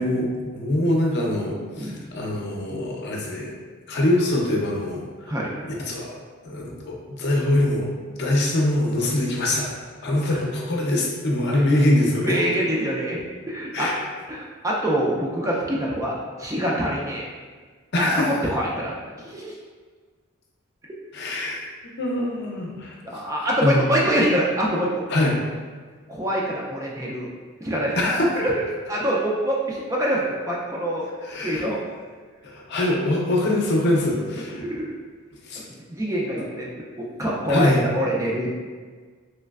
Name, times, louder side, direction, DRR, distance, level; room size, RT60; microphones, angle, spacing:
voice 1, 0.0-3.5 3.9-5.3 5.6-6.2 6.4-7.9 8.2-9.7 10.0-12.3 13.7-13.9 17.9-18.4 21.1-21.6 22.0-23.0 23.6-23.9 25.1-25.4 28.0-28.3 31.2-31.6 32.4-34.7 35.5-35.6 37.5-37.9, left 1 dB, 55° left, -2 dB, 0.6 m, -23 dB
voice 2, 12.2-13.9 14.3-17.3 17.9-19.5 23.1-25.0 26.1-27.3 27.6-28.0 28.4-28.5 28.9-31.1 31.4-31.8 34.6-34.9 35.6-35.7 35.9-36.7 37.0-38.5, right 1 dB, 15° right, -3 dB, 0.4 m, -25 dB
3.2 x 3.0 x 2.3 m, 1.5 s
head